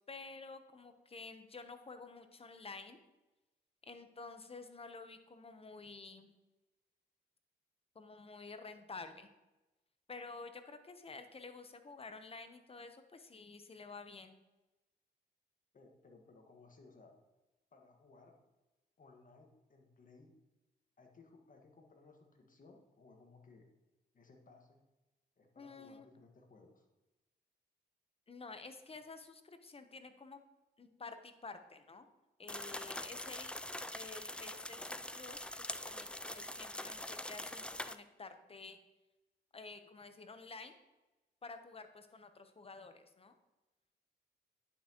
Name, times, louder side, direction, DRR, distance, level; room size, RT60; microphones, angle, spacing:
voice 1, 0.1-3.0 3.8-6.3 7.9-9.3 10.1-14.4 25.6-26.1 28.3-30.4 30.8-32.1 32.4-33.6 33.9-38.8 39.5-40.8 41.4-43.4, left 4 dB, 35° left, 8 dB, 0.8 m, -51 dB
voice 2, 15.7-17.2 17.7-18.3 19.0-20.3 21.0-23.6 24.1-24.8 25.4-26.9 32.6-33.0, left 3 dB, 50° left, 3 dB, 1.6 m, -61 dB
sound 1, 32.5-38.0, left 1 dB, 5° left, 0.3 m, -44 dB
10.0 x 5.8 x 3.0 m, 1.0 s
cardioid pair, 65°, 18 cm